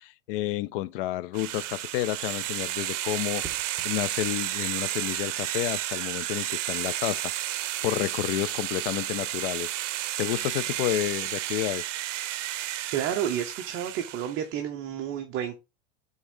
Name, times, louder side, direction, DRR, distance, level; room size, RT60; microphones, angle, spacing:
voice 1, 0.0-7.6 7.8-9.7 10.2-11.9, left 16 dB, 50° left, 0.5 m, -30 dB
sound 1, 1.3-14.4, right 14 dB, 75° right, 0.7 m, -32 dB
sound 2, 3.4-4.0 5.9-6.2, right 3 dB, 15° right, 1.6 m, -46 dB
voice 2, 12.9-15.5, right 9 dB, 35° right, 0.9 m, -30 dB
6.2 x 3.7 x 5.3 m
supercardioid pair, 140°, 37 cm